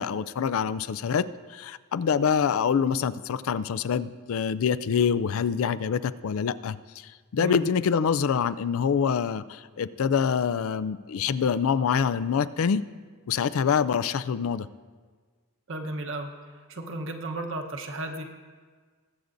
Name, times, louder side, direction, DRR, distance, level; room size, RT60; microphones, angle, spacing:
voice 1, 0.0-12.8 13.3-14.7, left 6 dB, 70° left, 16 dB, 0.4 m, -26 dB
voice 2, 7.4-7.7 15.7-16.3 16.7-18.2, right 2 dB, 60° right, 3 dB, 1.0 m, -34 dB
21.0 x 8.1 x 2.6 m, 1.5 s
head